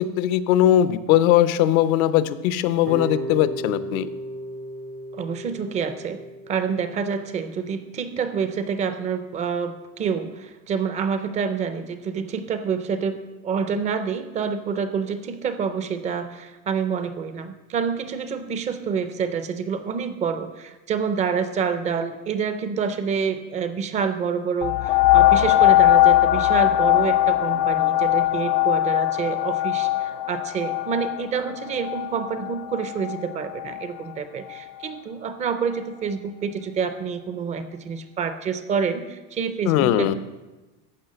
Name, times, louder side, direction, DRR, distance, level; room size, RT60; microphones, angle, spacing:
voice 1, 0.0-4.1 39.7-40.1, left 12 dB, 85° left, 14 dB, 0.9 m, -20 dB
sound 1, 2.8-7.9, right 1 dB, 85° right, 3.8 m, -35 dB
voice 2, 5.1-40.1, right 6 dB, 20° right, 10 dB, 0.4 m, -27 dB
sound 2, 24.6-33.9 34.5-34.6, left 16 dB, 50° left, 0.5 m, -20 dB
14.0 x 5.7 x 8.5 m, 1.1 s
cardioid pair, 175°, 41 cm